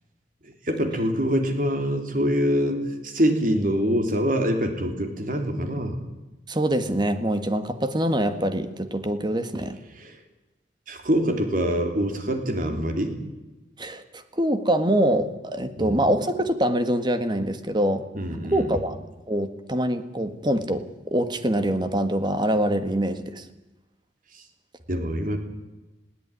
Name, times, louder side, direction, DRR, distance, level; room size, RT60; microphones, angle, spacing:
voice 1, 0.7-6.0 10.0-10.2 10.9-13.2 15.8-16.0 18.1-18.7 24.9-25.4, equal, 50° right, 5 dB, 3.4 m, -25 dB
voice 2, 6.5-9.8 13.8-18.0 18.5-19.0 19.3-23.4, right 1 dB, 25° right, 9 dB, 1.6 m, -24 dB
21.0 x 16.5 x 9.9 m, 1.1 s
head